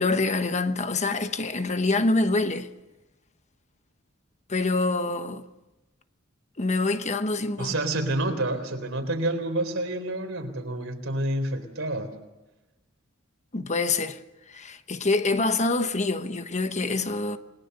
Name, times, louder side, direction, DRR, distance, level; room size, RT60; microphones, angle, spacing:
voice 1, 0.0-2.7 4.5-5.4 6.6-7.7 13.5-14.2 14.5-17.4, left 3 dB, 35° left, 1.1 m, -26 dB
voice 2, 7.6-12.2, right 1 dB, 70° right, 3.9 m, -28 dB
29.0 x 21.0 x 6.8 m
head